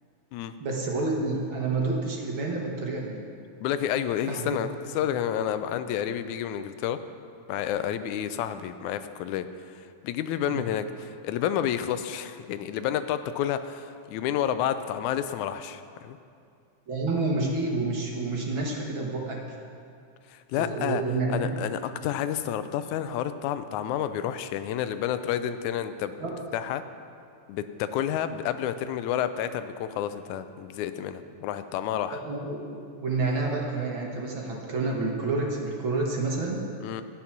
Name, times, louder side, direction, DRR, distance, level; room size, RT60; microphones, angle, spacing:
voice 1, 0.6-3.2 4.3-4.6 10.4-10.6 16.9-19.4 20.6-21.6 26.2-26.4 32.2-36.6, right 3 dB, 50° right, -1 dB, 1.8 m, -29 dB
voice 2, 3.6-4.7 5.0-7.0 7.5-16.2 20.3-21.0 21.3-26.1 26.5-26.8 27.5-32.2 36.8-37.0, left 10 dB, 85° left, 11 dB, 2.0 m, -30 dB
12.5 x 9.4 x 5.9 m, 2.4 s
omnidirectional pair, 3.3 m